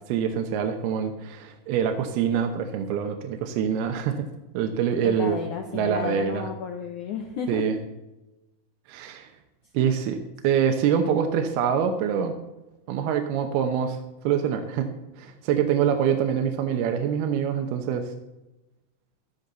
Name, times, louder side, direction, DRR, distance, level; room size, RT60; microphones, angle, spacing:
voice 1, 0.1-4.3 4.5-5.4 5.7-6.5 7.5-7.7 8.9-9.3 9.7-10.2 10.4-12.4 12.9-14.9 15.2-18.1, right 8 dB, 75° right, 5 dB, 2.8 m, -25 dB
voice 2, 5.0-7.6, left 7 dB, 75° left, 4 dB, 1.8 m, -32 dB
13.0 x 13.0 x 4.0 m, 1.0 s
omnidirectional pair, 4.8 m